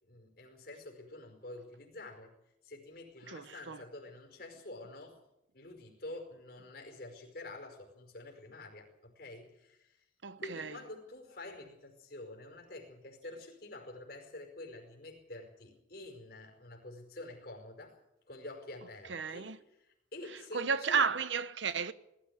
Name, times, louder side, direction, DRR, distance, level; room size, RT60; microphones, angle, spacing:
voice 1, 0.0-2.3 2.6-5.2 5.5-10.0 10.4-18.0 18.3-21.1, left 2 dB, 55° left, 5.0 m, -48 dB
voice 2, 3.3-3.8 10.2-10.8 19.1-19.6 20.5-21.9, right 5 dB, 85° right, 1.0 m, -33 dB
20.0 x 14.0 x 9.6 m
head